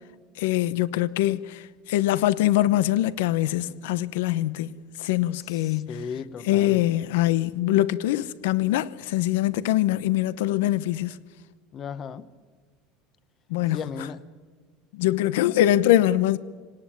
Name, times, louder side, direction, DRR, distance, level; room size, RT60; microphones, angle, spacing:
voice 1, 0.4-6.0 6.4-11.2 13.5-13.8 14.9-16.4, left 14 dB, 85° left, 0.8 m, -23 dB
voice 2, 5.4-6.8 11.7-12.2 13.7-14.2, left 7 dB, 30° left, 1.0 m, -36 dB
26.0 x 18.5 x 8.8 m
supercardioid pair, 150°, 0 cm